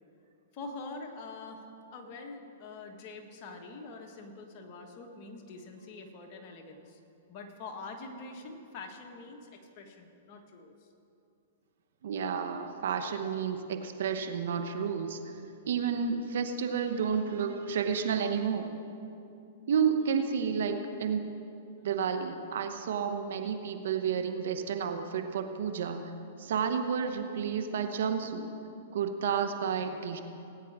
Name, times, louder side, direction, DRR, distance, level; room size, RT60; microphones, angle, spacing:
voice 1, 0.5-1.6 1.9-7.0 7.3-10.9, left 3 dB, 45° left, 2 dB, 1.6 m, -45 dB
voice 2, 12.0-15.3 15.6-18.7 19.7-21.3 21.8-26.1 26.4-28.5 28.9-30.2, right 6 dB, 70° right, 7 dB, 1.0 m, -31 dB
19.0 x 9.3 x 3.7 m, 2.7 s
hypercardioid pair, 125°, 0 cm